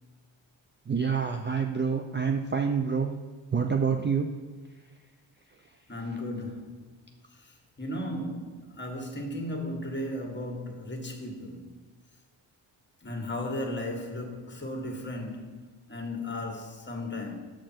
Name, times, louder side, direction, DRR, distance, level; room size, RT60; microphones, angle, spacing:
voice 1, 0.9-3.2 3.5-4.3, right 6 dB, 25° right, 0.5 m, -27 dB
voice 2, 5.9-6.9 7.4-11.8 13.0-15.6 15.9-17.5, left 1 dB, 20° left, 1.7 m, -35 dB
7.4 x 4.9 x 4.5 m
cardioid pair, 70°, 49 cm